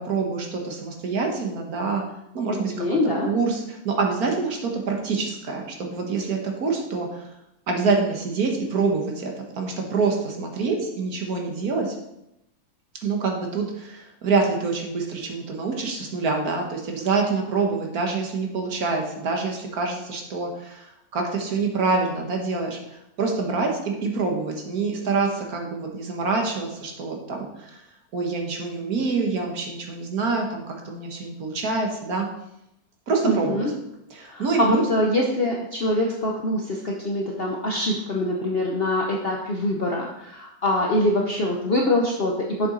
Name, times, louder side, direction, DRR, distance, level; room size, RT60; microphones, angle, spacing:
voice 1, 0.1-2.0 2.3-7.2 7.7-11.9 13.0-27.8 28.1-32.3 33.1-33.7 34.1-34.8, right 4 dB, 70° right, 2 dB, 1.8 m, -26 dB
voice 2, 2.8-3.3 33.2-33.7 34.3-42.7, left 1 dB, 45° left, -1 dB, 0.9 m, -24 dB
7.0 x 6.9 x 3.9 m, 0.84 s
omnidirectional pair, 1.7 m